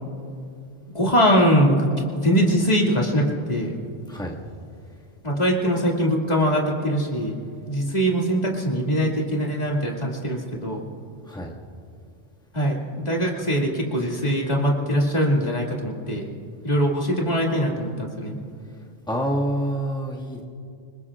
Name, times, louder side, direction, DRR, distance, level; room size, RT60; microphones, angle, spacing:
voice 1, 0.9-3.8 5.2-10.9 12.5-16.3 16.6-18.4, equal, 35° left, -2 dB, 2.5 m, -22 dB
voice 2, 19.1-20.4, right 1 dB, 5° left, -3 dB, 1.9 m, -27 dB
27.0 x 21.0 x 2.5 m, 2.4 s
omnidirectional pair, 1.1 m